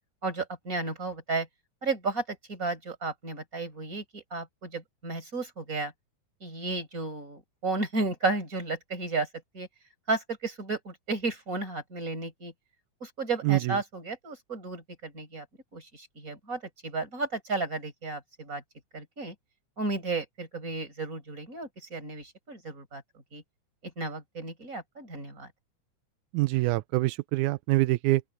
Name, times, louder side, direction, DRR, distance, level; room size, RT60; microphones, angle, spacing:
voice 1, 0.2-1.5 1.8-5.9 6.4-9.3 9.5-9.7 10.1-12.5 13.0-15.5 15.7-18.6 18.9-19.3 19.8-23.0 23.3-23.4 24.0-25.5, right 3 dB, 25° right, 5.6 m, -33 dB
voice 2, 26.3-28.2, right 19 dB, 90° right, 2.0 m, -25 dB
open air
omnidirectional pair, 3.4 m